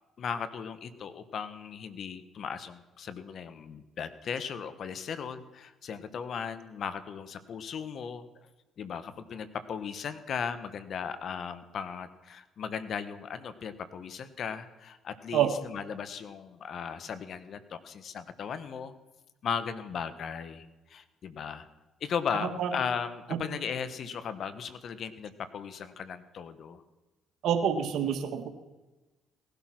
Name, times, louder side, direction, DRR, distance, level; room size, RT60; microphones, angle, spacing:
voice 1, 0.2-8.3 8.8-18.9 19.4-21.7 22.0-26.8, left 7 dB, 60° left, 12 dB, 1.3 m, -37 dB
voice 2, 22.4-22.7 27.4-28.5, right 9 dB, 70° right, 7 dB, 1.9 m, -27 dB
18.5 x 12.0 x 6.1 m, 1.1 s
supercardioid pair, 65°, 0 cm